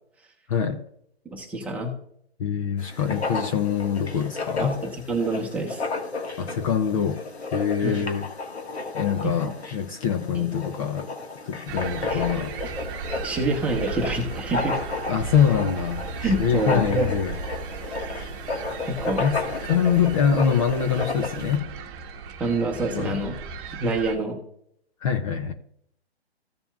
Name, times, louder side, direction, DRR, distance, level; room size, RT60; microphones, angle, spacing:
voice 1, 0.5-0.8 2.4-4.8 6.4-7.2 7.5-8.3 8.9-11.1 11.5-12.5 15.1-16.0 16.4-17.3 19.2-19.4 19.6-21.7 22.9-23.2 25.0-25.5, left 7 dB, 30° left, 7 dB, 0.7 m, -24 dB
voice 2, 1.2-1.9 4.6-5.8 7.8-8.0 9.2-9.5 10.3-10.4 12.1-12.2 13.2-14.8 16.2-17.1 18.1-18.2 18.9-19.2 22.4-23.3 23.7-24.4, right 2 dB, 5° right, -1 dB, 1.1 m, -27 dB
Writing, 2.8-21.6, left 3 dB, 80° left, 1.8 m, -33 dB
sound 1, 11.7-24.2, right 4 dB, 25° right, 1.2 m, -35 dB
15.0 x 6.9 x 2.4 m, 0.69 s
figure-of-eight pair, 140°, 32 cm